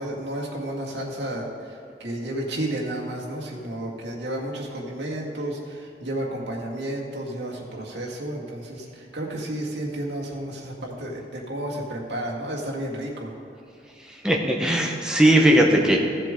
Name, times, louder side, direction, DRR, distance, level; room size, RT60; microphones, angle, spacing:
voice 1, 0.0-13.3, right 1 dB, 80° right, -3 dB, 2.0 m, -32 dB
voice 2, 14.0-16.0, right 1 dB, 5° right, 0 dB, 1.0 m, -19 dB
15.5 x 7.5 x 3.8 m, 2.8 s
head